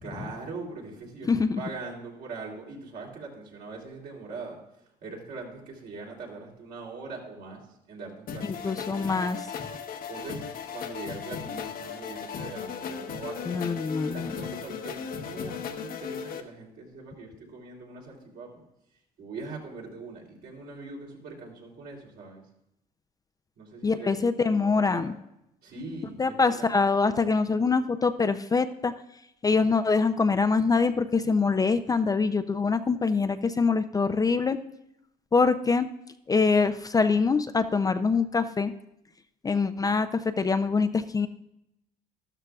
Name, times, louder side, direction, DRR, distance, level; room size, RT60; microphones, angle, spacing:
voice 1, 0.0-1.3 1.6-4.6 5.0-7.6 7.9-9.1 10.1-10.4 10.7-13.7 14.1-18.6 19.2-22.4 23.6-24.2 24.5-25.1 25.6-26.7, right 3 dB, 65° right, -1 dB, 3.0 m, -41 dB
voice 2, 1.3-1.6 8.4-9.4 13.5-14.3 23.8-25.2 26.2-28.9 29.4-34.6 35.3-35.9 36.3-38.7 39.4-41.3, left 4 dB, 20° left, 9 dB, 0.4 m, -24 dB
sound 1, 8.3-16.4, left 7 dB, 60° left, 0.9 m, -37 dB
12.5 x 12.5 x 2.3 m, 0.83 s
cardioid pair, 110°, 17 cm